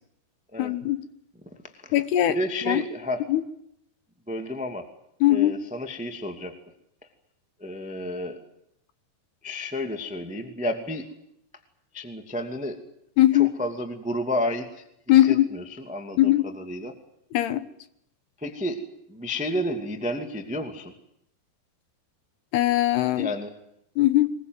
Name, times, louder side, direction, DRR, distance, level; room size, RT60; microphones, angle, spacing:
voice 1, 0.6-1.0 1.9-2.4 2.6-2.8 3.3-3.4 5.2-5.5 13.2-13.5 15.1-15.5 16.2-16.4 17.3-17.7 22.5-23.3 24.0-24.3, left 14 dB, 75° left, 13 dB, 3.0 m, -20 dB
voice 2, 1.4-2.0 2.3-3.2 4.3-4.9 5.3-6.5 7.6-8.4 9.4-11.1 11.9-12.8 13.3-14.8 15.1-16.9 18.4-18.8 19.1-20.9 23.1-23.5, left 1 dB, 5° right, 7 dB, 0.9 m, -31 dB
23.0 x 21.0 x 9.5 m, 0.74 s
omnidirectional pair, 4.9 m